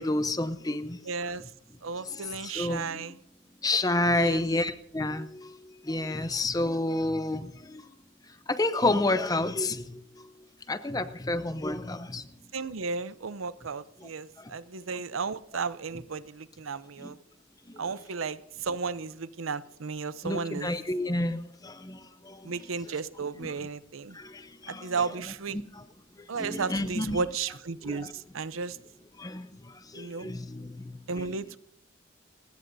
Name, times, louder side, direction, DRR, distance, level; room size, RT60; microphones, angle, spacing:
voice 1, 0.0-1.0 2.4-3.1 3.6-7.8 8.5-10.0 10.7-12.3 14.4-14.5 17.0-17.1 17.7-17.8 20.2-22.5 24.1-24.9 26.4-27.2 27.9-28.0 29.2-31.0, left 2 dB, 20° left, 12 dB, 0.7 m, -30 dB
voice 2, 1.0-1.5 1.8-3.2 4.1-4.4 12.5-17.2 17.8-20.7 22.4-24.2 24.7-25.6 26.3-28.8 29.9-30.3 31.1-31.6, right 5 dB, 85° right, 15 dB, 0.7 m, -34 dB
30.0 x 16.5 x 2.7 m, 0.69 s
head